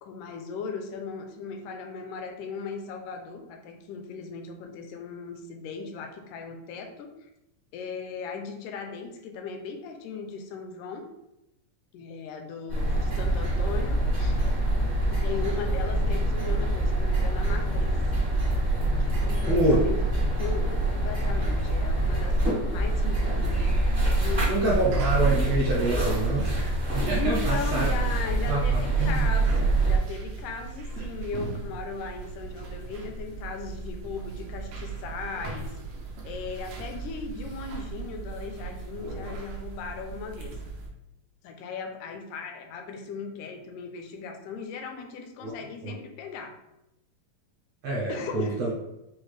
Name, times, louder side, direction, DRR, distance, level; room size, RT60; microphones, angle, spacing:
voice 1, 0.0-7.3 7.7-11.1 11.9-14.4 15.1-18.1 19.0-20.0 20.4-23.8 24.2-24.9 27.1-35.8 36.2-40.6 41.4-46.6 48.1-48.7, left 5 dB, 80° left, 4 dB, 2.0 m, -37 dB
sound 1, 12.7-30.0, right 2 dB, 55° right, 0.5 m, -25 dB
voice 2, 19.4-19.8 24.5-27.9 28.5-29.2 30.9-31.0 45.4-45.5 45.8-45.9 47.8-48.7, right 1 dB, 75° right, -4 dB, 1.5 m, -27 dB
sound 2, 24.3-40.9, right 6 dB, 90° right, 1.3 m, -36 dB
6.1 x 2.1 x 3.2 m, 0.91 s
omnidirectional pair, 3.7 m